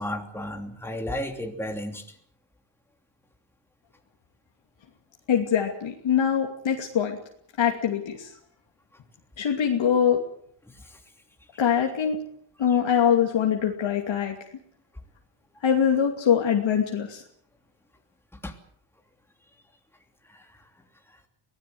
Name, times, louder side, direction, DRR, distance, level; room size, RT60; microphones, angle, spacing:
voice 1, 0.0-2.1 10.7-11.0 18.4-18.5 20.2-20.7 21.1-21.2, left 1 dB, 5° left, 3 dB, 2.9 m, -34 dB
voice 2, 5.3-7.2 7.6-8.3 9.4-10.2 11.6-12.2 12.6-14.4 15.6-17.2, left 8 dB, 65° left, 1 dB, 2.8 m, -23 dB
23.5 x 17.5 x 7.9 m, 0.65 s
cardioid pair, 120°, 48 cm